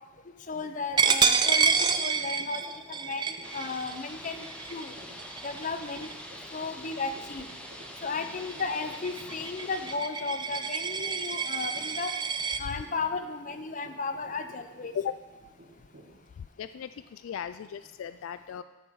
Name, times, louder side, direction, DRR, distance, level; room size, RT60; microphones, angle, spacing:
voice 1, 0.5-2.6 2.9-4.9 5.4-6.1 6.5-7.5 8.0-12.1 12.6-14.9, left 4 dB, 40° left, 8 dB, 0.7 m, -34 dB
Coin (dropping), 1.0-6.4 6.8-7.1 7.5-12.6, right 6 dB, 20° right, 0.4 m, -28 dB
sound 1, 2.1-16.1, right 1 dB, 60° right, 2.2 m, -54 dB
sound 2, 3.4-10.0, equal, 5° left, 0.9 m, -44 dB
voice 2, 16.4-18.6, left 8 dB, 80° left, 12 dB, 0.3 m, -36 dB
13.0 x 6.8 x 4.7 m, 1.1 s
head